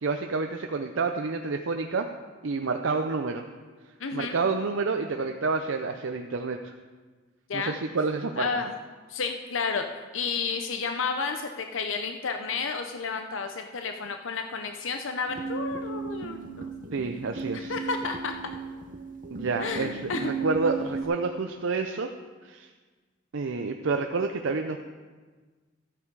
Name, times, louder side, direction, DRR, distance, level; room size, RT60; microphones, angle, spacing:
voice 1, 0.0-2.1 2.4-3.4 4.1-6.7 7.5-8.5 16.9-17.7 19.3-22.1 22.4-22.7 23.3-24.8, right 4 dB, 75° right, 5 dB, 0.6 m, -29 dB
voice 2, 4.0-4.4 7.5-7.8 8.4-8.7 9.1-9.9 10.1-16.7 17.7-18.3 19.6-20.3, left 5 dB, 75° left, 6 dB, 0.6 m, -31 dB
sound 1, 15.3-21.1, right 4 dB, 40° right, 0.7 m, -35 dB
13.5 x 8.9 x 4.7 m, 1.4 s
head